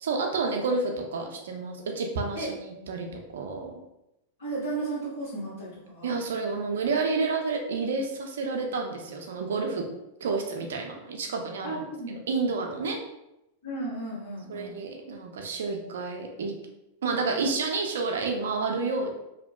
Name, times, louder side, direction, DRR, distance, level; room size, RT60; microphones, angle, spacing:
voice 1, 0.0-3.7 6.0-9.8 10.2-13.0 14.5-16.5 17.0-19.2, right 4 dB, 70° right, 2 dB, 0.4 m, -30 dB
voice 2, 4.4-6.2 11.6-12.2 13.6-14.8, right 2 dB, 75° left, -12 dB, 1.0 m, -34 dB
2.6 x 2.1 x 2.3 m, 0.87 s
figure-of-eight pair, 95°, 0 cm